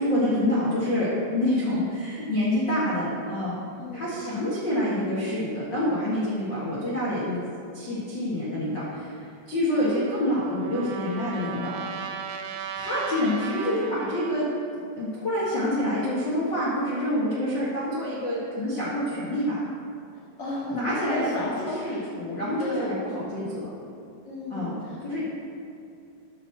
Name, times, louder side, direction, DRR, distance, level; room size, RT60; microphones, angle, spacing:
voice 1, 0.0-3.6 3.9-7.4 7.7-9.1 9.5-11.7 12.8-14.5 15.0-19.6 20.7-21.5 21.8-23.6 24.5-24.7 25.0-25.2, left 1 dB, 75° left, -9 dB, 1.0 m, -27 dB
voice 2, 3.8-4.4 20.4-22.1 22.6-22.9 23.2-23.5 24.2-25.2, left 2 dB, 30° left, -7 dB, 2.0 m, -34 dB
Trumpet, 9.7-14.4, right 7 dB, 85° right, 3.0 m, -37 dB
10.5 x 4.7 x 7.2 m, 2.7 s
omnidirectional pair, 5.4 m